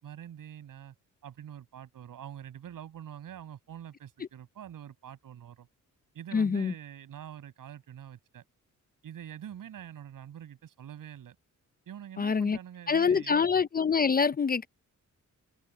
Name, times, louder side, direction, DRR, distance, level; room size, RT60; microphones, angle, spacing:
voice 1, 0.0-0.9 1.2-5.7 6.1-8.4 9.0-11.4 11.9-13.4, right 10 dB, 80° right, 7.2 m, -45 dB
voice 2, 6.3-6.7 12.2-12.6 12.9-14.7, left 5 dB, 30° left, 0.5 m, -25 dB
open air
cardioid pair, 110°, 33 cm